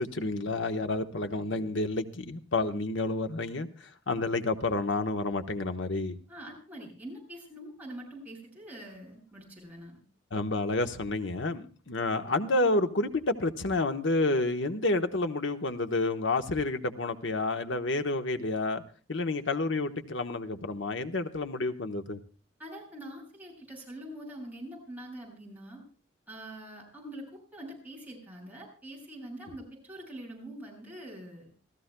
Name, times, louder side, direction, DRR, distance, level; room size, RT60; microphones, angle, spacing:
voice 1, 0.0-6.2 10.3-18.8 19.1-22.2, left 2 dB, 65° left, 1.1 m, -29 dB
voice 2, 6.3-10.0 22.6-25.8 26.3-31.5, right 1 dB, 10° right, 7.4 m, -44 dB
28.5 x 14.5 x 2.3 m
head